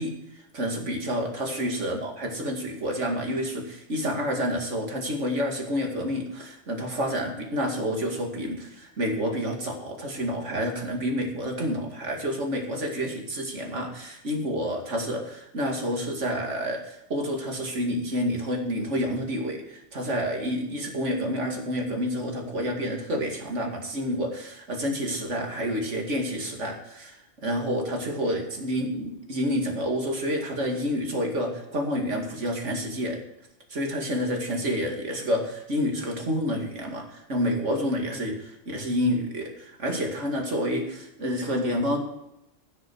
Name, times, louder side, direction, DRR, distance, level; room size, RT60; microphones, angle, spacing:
voice 1, 0.0-33.2 33.7-42.0, equal, 80° right, 2 dB, 2.6 m, -29 dB
15.5 x 6.4 x 6.2 m, 0.85 s
omnidirectional pair, 1.2 m